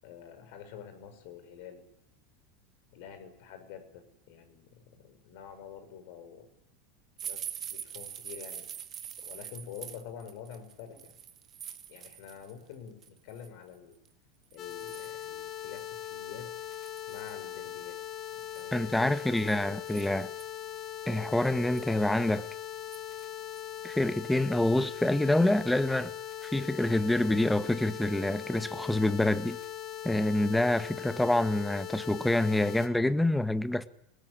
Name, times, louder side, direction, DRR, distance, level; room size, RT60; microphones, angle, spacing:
voice 1, 0.0-1.8 2.9-6.5 7.2-8.7 9.2-11.1 11.9-14.0 14.5-16.5 17.1-18.0 18.3-19.2, left 8 dB, 60° left, 6.3 m, -47 dB
sound 1, 7.2-12.5 12.9-13.5 14.0-14.1 14.5-15.2 15.8-15.9 16.1-16.2 16.7-17.4 18.4-20.4 21.0-21.1 21.5-22.0 22.9-23.2 23.6-23.8 24.1-24.2, right 9 dB, 35° right, 2.4 m, -44 dB
sound 2, 14.6-32.9, left 11 dB, 40° left, 4.6 m, -40 dB
voice 2, 18.7-20.3 21.1-22.4 23.8-26.1 26.4-29.6 30.0-33.9, left 1 dB, 5° left, 1.7 m, -27 dB
26.5 x 19.5 x 10.0 m
hypercardioid pair, 85°, 0 cm